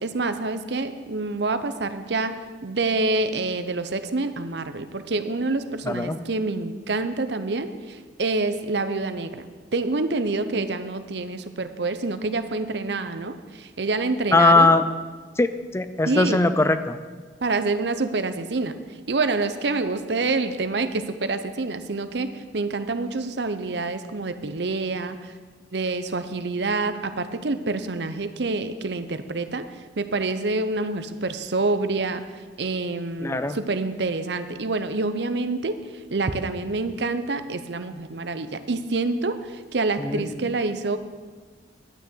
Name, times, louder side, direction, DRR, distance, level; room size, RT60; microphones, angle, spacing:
voice 1, 0.0-9.5 9.7-14.7 16.1-16.5 17.4-18.8 19.1-25.3 25.7-29.6 30.0-32.2 32.6-35.8 36.1-41.0, right 3 dB, 65° right, 11 dB, 0.7 m, -27 dB
voice 2, 5.9-6.2 14.3-14.8 15.4-17.0 33.2-33.6 40.0-40.3, left 2 dB, 15° left, 11 dB, 0.4 m, -20 dB
11.5 x 6.5 x 8.3 m, 1.4 s
head